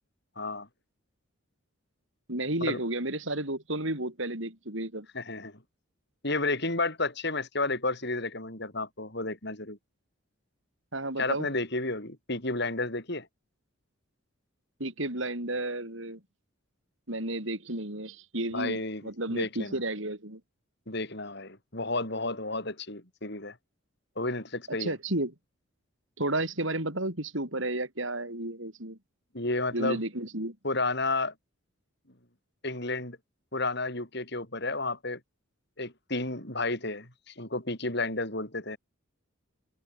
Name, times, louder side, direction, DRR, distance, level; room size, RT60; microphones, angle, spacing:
voice 1, 0.4-0.7 2.6-2.8 5.1-5.6 6.2-9.8 11.2-13.3 18.5-19.0 19.3-19.8 20.9-23.6 24.2-24.9 29.3-30.0 30.6-31.3 32.6-33.2 33.5-35.2 35.8-38.8, left 2 dB, 55° left, 7.4 m, -31 dB
voice 2, 2.3-5.1 10.9-11.5 14.8-16.2 17.1-20.4 24.7-25.3 26.2-29.0 29.7-30.6, right 1 dB, 65° right, 6.1 m, -32 dB
head